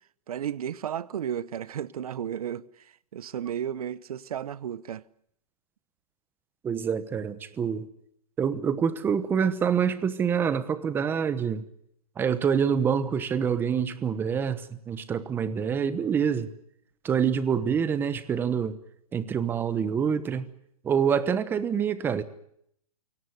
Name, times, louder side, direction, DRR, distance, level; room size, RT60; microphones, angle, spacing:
voice 1, 0.3-2.7 3.1-5.0, right 9 dB, 70° right, 0.9 m, -33 dB
voice 2, 6.6-7.9 8.4-11.6 12.2-16.5 17.0-18.8 19.1-20.5 20.8-22.2, right 7 dB, 10° right, 1.0 m, -26 dB
23.5 x 17.5 x 9.6 m
hypercardioid pair, 160°, 19 cm